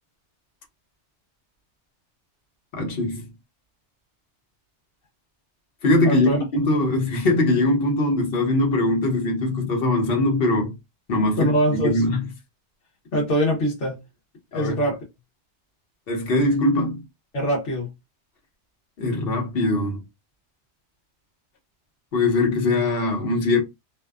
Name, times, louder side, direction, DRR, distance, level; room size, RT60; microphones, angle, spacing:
voice 1, 2.7-3.3 5.8-10.7 11.1-12.2 14.5-14.8 16.1-17.0 19.0-20.0 22.1-23.6, left 2 dB, 60° left, 1.1 m, -21 dB
voice 2, 6.0-6.4 11.4-12.0 13.1-14.0 14.5-15.0 17.3-17.9, equal, 85° left, 1.2 m, -23 dB
2.7 x 2.1 x 2.3 m
omnidirectional pair, 1.2 m